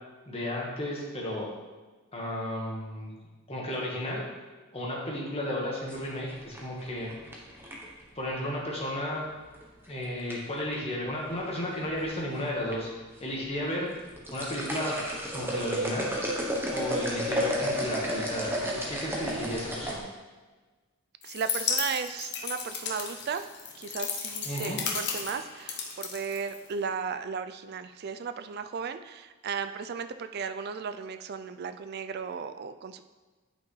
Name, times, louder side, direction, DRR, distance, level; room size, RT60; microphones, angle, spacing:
voice 1, 0.3-1.5 2.1-3.1 3.5-4.2 4.7-7.1 8.2-9.2 9.9-12.9 13.2-13.9 14.3-15.0 15.3-16.1 16.7-20.0 24.4-24.8, left 1 dB, 25° left, -3 dB, 1.5 m, -33 dB
sound 1, 5.9-8.0 9.5-9.9 10.3-10.7 11.7-12.2 12.5-12.7 13.2-13.3 14.0-20.0, equal, 10° right, 0.9 m, -32 dB
sound 2, 21.2-26.9, left 6 dB, 50° left, 0.8 m, -34 dB
voice 2, 21.2-23.5 23.8-33.0, right 6 dB, 45° right, 10 dB, 0.3 m, -35 dB
8.9 x 5.3 x 3.2 m, 1.3 s
head